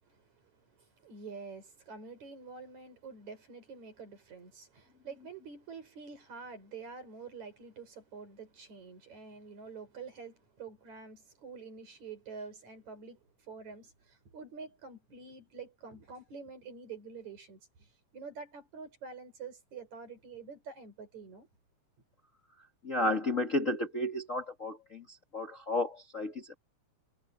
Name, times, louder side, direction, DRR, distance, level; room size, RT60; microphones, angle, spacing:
voice 1, 0.0-21.5, right 5 dB, 65° right, 6.6 m, -47 dB
voice 2, 22.8-26.6, left 1 dB, 30° left, 1.6 m, -32 dB
omnidirectional pair, 3.5 m